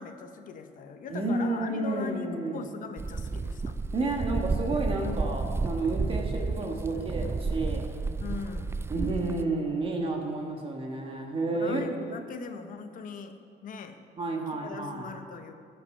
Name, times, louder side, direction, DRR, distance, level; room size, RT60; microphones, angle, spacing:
voice 1, 0.0-3.7 8.2-8.8 11.5-14.0 14.5-15.5, left 5 dB, 50° left, 7 dB, 1.0 m, -40 dB
voice 2, 1.1-2.7 3.9-7.9 8.9-11.9 14.2-15.1, right 2 dB, 35° right, 1 dB, 1.5 m, -31 dB
sound 1, 3.0-9.4, right 3 dB, 15° right, 0.3 m, -31 dB
15.5 x 6.0 x 5.5 m, 2.4 s
cardioid pair, 110°, 17 cm